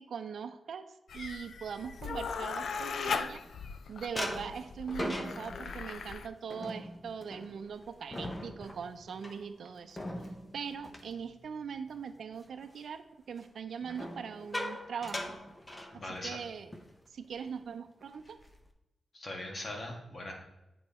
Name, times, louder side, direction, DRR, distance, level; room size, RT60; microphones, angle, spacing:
voice 1, 0.0-3.4 3.9-10.0 10.5-15.4 16.2-16.8 17.1-18.4, right 6 dB, 70° right, 8 dB, 0.5 m, -41 dB
Living room - Atmosphere - Mouth noises & laughing, 1.1-6.3, left 5 dB, 70° left, 0.4 m, -38 dB
sound 1, 2.4-3.7 4.1-12.0 12.3-12.7 13.8-16.4 16.7-16.9 17.2-17.5 18.0-18.7, left 1 dB, 15° left, 0.7 m, -41 dB
voice 2, 15.9-16.4 19.1-20.3, left 1 dB, 35° left, 1 dB, 1.6 m, -40 dB
8.7 x 4.5 x 4.2 m, 0.94 s
wide cardioid pair, 140°, 0 cm